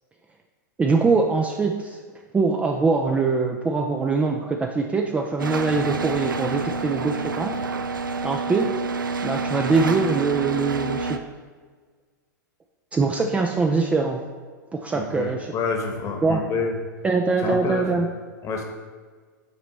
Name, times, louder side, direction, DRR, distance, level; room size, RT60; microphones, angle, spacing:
voice 1, 0.8-2.0 2.3-7.6 8.2-8.8 9.2-11.3 12.9-14.2 14.7-15.5 16.2-16.4 17.0-18.1, right 4 dB, 10° right, 2 dB, 0.4 m, -23 dB
sound 1, 5.4-11.2, right 4 dB, 90° right, 0.4 m, -28 dB
voice 2, 14.9-16.7 17.4-17.9 18.4-18.6, left 4 dB, 30° left, 2 dB, 1.1 m, -28 dB
9.0 x 4.0 x 3.1 m, 1.6 s
hypercardioid pair, 105°, 11 cm